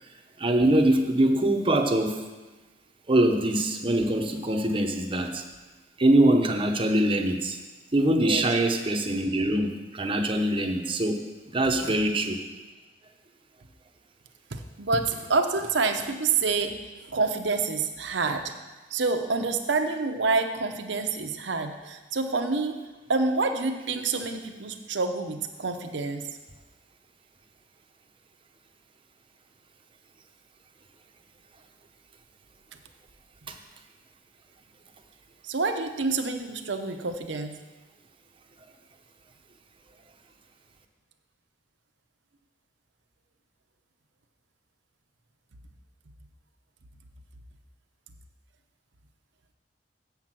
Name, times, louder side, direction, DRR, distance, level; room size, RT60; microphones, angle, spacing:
voice 1, 0.4-2.2 3.1-5.4 6.0-7.6 7.9-11.2 11.5-12.4 33.5-33.6, right 1 dB, 30° right, 4 dB, 0.8 m, -23 dB
voice 2, 14.5-16.7 17.1-18.4 18.9-22.8 23.1-26.2 35.4-37.6, right 4 dB, 75° right, 5 dB, 0.8 m, -27 dB
7.3 x 5.9 x 7.5 m, 1.2 s
head